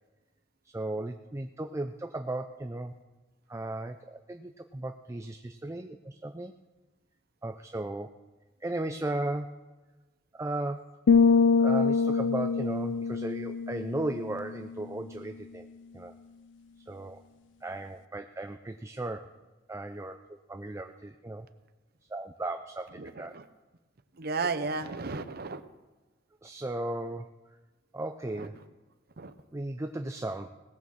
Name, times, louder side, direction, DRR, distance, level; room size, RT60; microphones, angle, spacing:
voice 1, 0.6-2.9 3.5-6.5 7.4-8.1 8.6-9.5 10.3-10.9 11.6-15.7 15.9-16.1 16.8-17.2 17.6-19.3 19.7-20.2 20.5-21.5 22.1-23.3 26.4-27.3 27.9-28.6 29.5-30.5, right 2 dB, 15° right, 6 dB, 0.5 m, -36 dB
sound 1, 11.1-14.8, left 5 dB, 75° left, 0.4 m, -25 dB
voice 2, 23.0-23.4 24.2-25.6 28.4-28.5 29.2-29.3, right 4 dB, 55° right, 11 dB, 0.8 m, -33 dB
18.5 x 6.3 x 7.2 m, 1.2 s
head